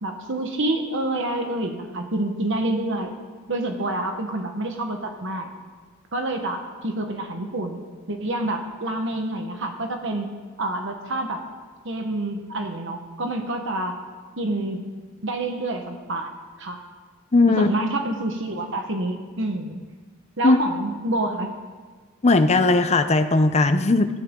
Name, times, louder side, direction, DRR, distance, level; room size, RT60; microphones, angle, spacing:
voice 1, 0.0-3.1 3.5-5.5 6.1-7.8 8.1-10.3 10.6-11.4 11.8-14.0 14.4-14.8 15.2-16.3 16.6-16.8 17.5-19.8 20.4-21.5, right 1 dB, 65° right, 4 dB, 1.3 m, -27 dB
voice 2, 17.3-17.7 20.4-20.6 22.2-24.1, left 2 dB, 35° left, 10 dB, 0.7 m, -17 dB
19.0 x 13.5 x 3.8 m, 1.5 s
head